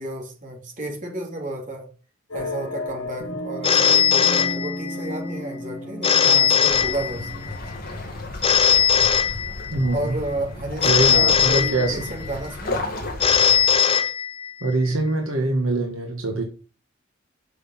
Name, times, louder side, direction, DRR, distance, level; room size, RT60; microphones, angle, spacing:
voice 1, 0.0-1.9 2.3-7.5 9.9-12.9, right 1 dB, 40° right, 3.1 m, -32 dB
sound 1, 2.3-7.7, left 1 dB, 85° left, 2.8 m, -34 dB
Telephone, 3.6-5.1 6.0-7.5 8.4-9.9 10.8-12.3 13.2-14.7, left 7 dB, 25° left, 0.9 m, -19 dB
sound 2, 6.7-13.7, left 2 dB, 45° left, 2.5 m, -34 dB
voice 2, 9.7-10.2 10.8-12.1 14.6-16.4, right 2 dB, 75° right, 1.8 m, -23 dB
6.6 x 6.4 x 7.3 m
head